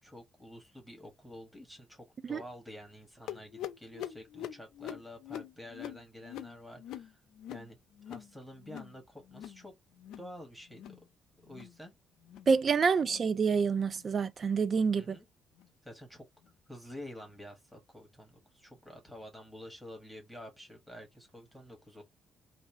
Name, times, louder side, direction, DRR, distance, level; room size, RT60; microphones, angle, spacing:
voice 1, 0.0-7.2 7.5-7.8 8.1-9.7 10.2-11.0 11.4-11.9 14.9-15.3 15.8-16.2 16.7-22.0, equal, ahead, 1.4 m, -49 dB
sound 1, 3.3-8.3 8.6-9.0 9.2-9.6 9.9-10.3 10.7-11.0 11.4-11.8 12.2-12.5 13.0-13.3 13.9-14.1 14.7-14.9 15.6-15.7 16.4-16.5, left 11 dB, 85° left, 0.5 m, -44 dB
voice 2, 12.5-15.1, right 5 dB, 45° right, 0.4 m, -27 dB
3.1 x 2.7 x 4.0 m
cardioid pair, 90°, 0 cm